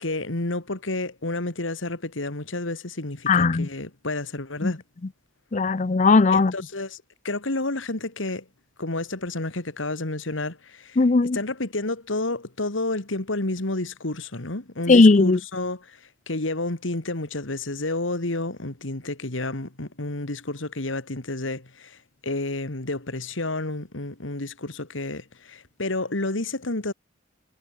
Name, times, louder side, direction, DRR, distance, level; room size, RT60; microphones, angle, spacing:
voice 1, 0.0-4.8 6.3-8.4 8.8-11.0 11.3-16.0 16.3-22.0 22.2-26.9, left 2 dB, 80° left, 2.4 m, -30 dB
voice 2, 3.3-3.7 4.6-4.7 5.5-6.5 11.0-11.4 14.9-15.4, left 3 dB, 40° left, 0.5 m, -17 dB
head